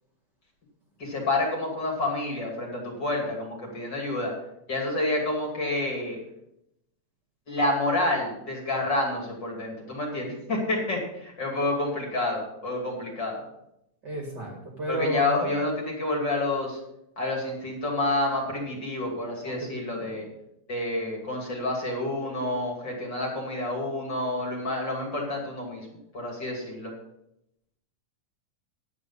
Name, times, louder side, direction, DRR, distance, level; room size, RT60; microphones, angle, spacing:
voice 1, 1.0-4.3 4.7-6.2 7.5-13.4 14.9-16.8 17.2-20.2 20.7-25.9 26.1-26.9, left 2 dB, 30° left, -1 dB, 2.7 m, -29 dB
voice 2, 14.0-15.4 19.4-20.0, right 1 dB, 35° right, 0 dB, 2.0 m, -32 dB
11.0 x 8.4 x 5.5 m, 0.81 s
omnidirectional pair, 4.3 m